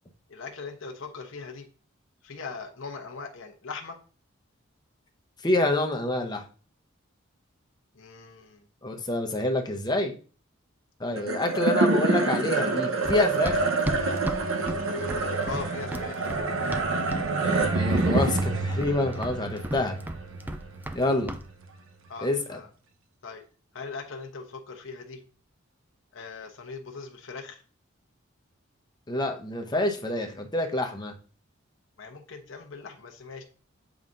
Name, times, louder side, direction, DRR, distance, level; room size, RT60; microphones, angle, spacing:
voice 1, 0.3-1.7 2.2-4.0 7.9-8.6 11.5-11.7 15.4-16.3 22.1-22.7 23.2-23.4 23.7-25.2 26.1-27.6 32.0-33.4, left 4 dB, 70° left, 2 dB, 1.0 m, -40 dB
voice 2, 5.4-6.4 8.8-10.1 11.0-13.6 17.4-20.0 20.9-21.3 22.2-22.6 29.1-31.1, left 2 dB, 20° left, 4 dB, 0.9 m, -27 dB
sound 1, 11.2-21.7, right 3 dB, 80° right, 0.8 m, -27 dB
Run, 13.1-17.3 17.5-18.1 18.4-21.0 21.3-21.5, right 1 dB, 10° right, 0.4 m, -34 dB
7.4 x 4.9 x 2.6 m, 0.37 s
head